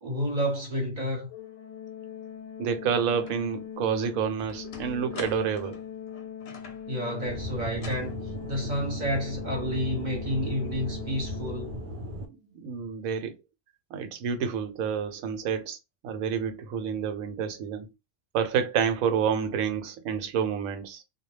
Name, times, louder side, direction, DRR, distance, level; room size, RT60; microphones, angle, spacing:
voice 1, 0.0-1.3 6.9-8.1 8.5-11.7, equal, 40° right, 0.9 m, -30 dB
Organ, 1.3-12.2, left 8 dB, 85° left, 1.0 m, -41 dB
voice 2, 2.6-5.8 12.5-13.4 13.9-15.8 16.0-17.9 18.3-21.0, right 7 dB, 85° right, 1.0 m, -29 dB
sound 1, 3.3-3.4 3.9-6.9 7.7-8.1, left 4 dB, 60° left, 0.8 m, -45 dB
Aircraft / Engine, 7.3-12.3, right 1 dB, 60° right, 0.5 m, -37 dB
2.3 x 2.1 x 3.0 m
omnidirectional pair, 1.4 m